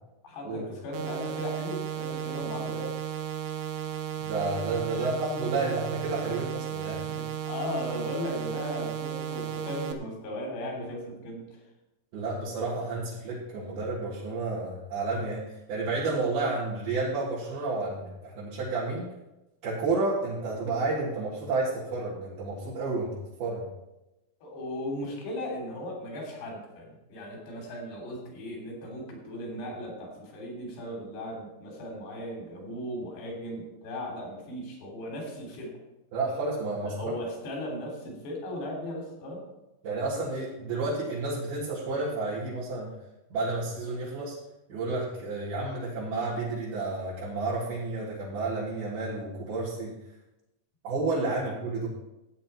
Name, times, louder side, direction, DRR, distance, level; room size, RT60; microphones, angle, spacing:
voice 1, 0.2-3.0 4.9-5.1 6.3-6.4 7.2-11.4 24.4-35.8 36.8-39.4, left 1 dB, 90° left, 0 dB, 5.5 m, -37 dB
sound 1, 0.9-9.9, right 11 dB, 90° right, 3.1 m, -34 dB
voice 2, 4.2-7.2 12.1-15.4 15.7-19.1 19.6-23.6 36.1-37.1 39.8-42.9 43.3-44.4 44.7-50.0 50.8-51.9, right 3 dB, 70° right, -9 dB, 4.3 m, -31 dB
13.0 x 9.1 x 4.5 m, 0.96 s
omnidirectional pair, 4.7 m